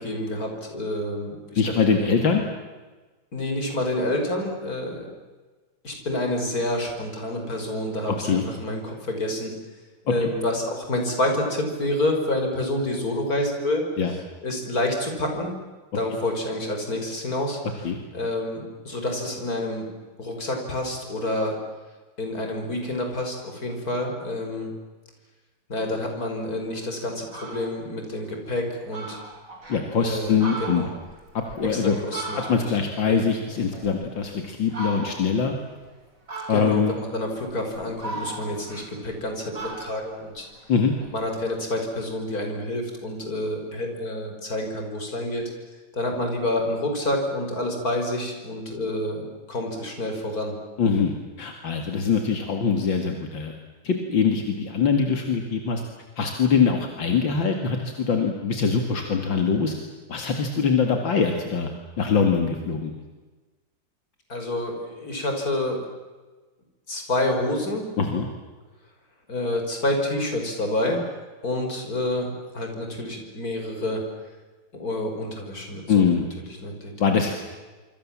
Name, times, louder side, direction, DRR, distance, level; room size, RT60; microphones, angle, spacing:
voice 1, 0.0-2.1 3.3-5.1 5.8-9.5 10.0-13.8 14.4-15.5 15.9-17.8 18.1-19.9 20.2-21.6 22.2-24.7 25.7-29.2 30.0-30.9 31.6-32.8 33.1-33.2 36.5-40.5 41.1-45.5 45.9-50.6 64.3-65.9 66.9-67.9 69.3-74.1 74.7-76.0 76.4-77.3, left 1 dB, 50° left, 3 dB, 5.7 m, -28 dB
voice 2, 1.6-2.4 8.2-8.4 10.2-10.3 14.0-14.1 17.8-18.0 29.7-30.8 31.3-31.9 32.5-35.5 36.5-37.0 40.7-40.9 50.8-53.5 53.8-55.8 56.2-59.7 60.1-61.7 62.0-62.9 68.0-68.3 75.9-76.3 77.0-77.3, left 6 dB, 75° left, 4 dB, 2.9 m, -23 dB
Fowl, 26.7-26.8 27.2-27.8 28.2-28.3 28.6-28.7 28.9-29.8 30.2-32.9 33.2-34.3 34.7-35.4 36.3-36.9 37.5-39.2 39.5-41.1, right 2 dB, 45° right, 6.2 m, -37 dB
26.0 x 26.0 x 7.5 m, 1.3 s
omnidirectional pair, 2.1 m